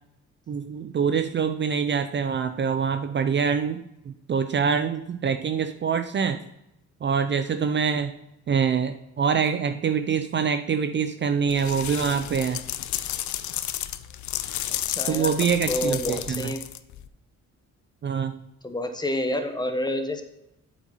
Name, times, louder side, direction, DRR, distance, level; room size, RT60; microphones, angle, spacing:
voice 1, 0.5-6.4 7.0-8.1 8.5-12.6 15.1-16.5 18.0-18.3, right 6 dB, 40° right, 9 dB, 0.5 m, -25 dB
sound 1, 11.5-17.1, left 13 dB, 75° left, 0.6 m, -32 dB
voice 2, 14.7-15.3 15.7-16.6 18.6-20.2, left 1 dB, 15° left, 7 dB, 1.1 m, -28 dB
7.7 x 6.2 x 4.1 m, 0.85 s
cardioid pair, 90°, 30 cm